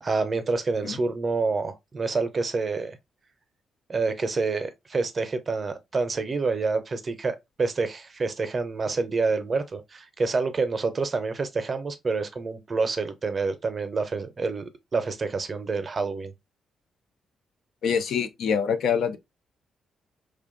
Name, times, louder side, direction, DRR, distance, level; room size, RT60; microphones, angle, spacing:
voice 1, 0.0-3.0 3.9-16.3, right 4 dB, 45° right, 0.5 m, -27 dB
voice 2, 17.8-19.2, left 7 dB, 75° left, 0.3 m, -25 dB
2.5 x 2.2 x 2.4 m
supercardioid pair, 55°, 0 cm